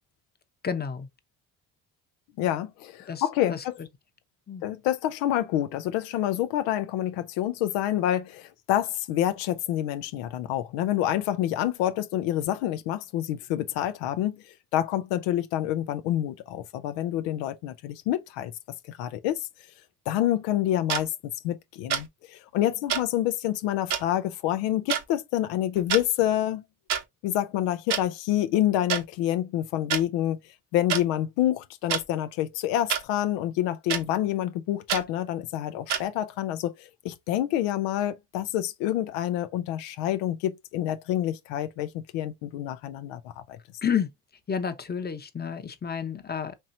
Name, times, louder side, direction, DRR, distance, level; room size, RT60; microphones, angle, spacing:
voice 1, 0.6-1.1 3.1-3.6 4.5-4.6 43.8-44.1 44.5-46.5, left 7 dB, 25° left, 0.8 m, -30 dB
voice 2, 2.4-3.7 4.6-14.4 14.7-18.5 18.9-19.5 20.1-26.6 27.2-30.4 30.7-43.6, left 12 dB, 80° left, 0.6 m, -27 dB
sound 1, 20.9-21.0 21.9-22.1 22.9-23.0 23.9-24.0 24.9-25.0 25.8-26.0 26.9-27.0 27.9-28.0 28.9-29.0 29.9-30.0 30.9-31.0 31.9-32.0 32.9-33.0 33.9-34.0 34.9-35.0 35.9-36.0, right 9 dB, 70° right, 1.1 m, -26 dB
4.5 x 2.9 x 2.6 m
supercardioid pair, 65°, 42 cm